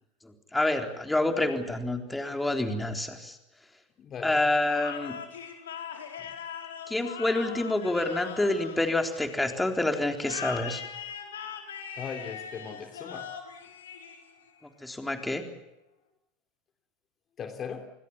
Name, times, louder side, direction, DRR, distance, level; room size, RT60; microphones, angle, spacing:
voice 1, 0.2-3.4 4.2-5.2 6.9-10.8 14.8-15.4, left 2 dB, 10° left, 5 dB, 3.9 m, -28 dB
voice 2, 4.0-4.4 6.2-6.3 12.0-13.3 17.4-17.9, left 6 dB, 35° left, 6 dB, 2.9 m, -39 dB
sound 1, 4.6-9.5 10.2-14.6, left 7 dB, 80° left, 4.3 m, -40 dB
29.0 x 20.5 x 7.3 m, 0.92 s
hypercardioid pair, 90°, 0 cm